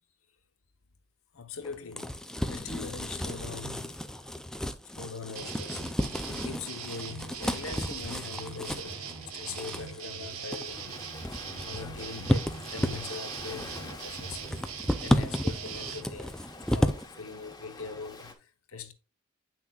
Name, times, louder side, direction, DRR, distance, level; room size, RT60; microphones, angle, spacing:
voice 1, 1.3-4.3 4.8-10.9 11.6-12.4 12.7-16.4 16.7-18.9, left 5 dB, 70° left, 0.9 m, -42 dB
sound 1, 1.6-17.0, equal, 5° left, 0.4 m, -33 dB
sound 2, 5.4-16.0, right 6 dB, 85° right, 1.2 m, -41 dB
Ocean, 7.4-18.3, left 2 dB, 20° left, 1.1 m, -48 dB
8.9 x 6.0 x 2.3 m
head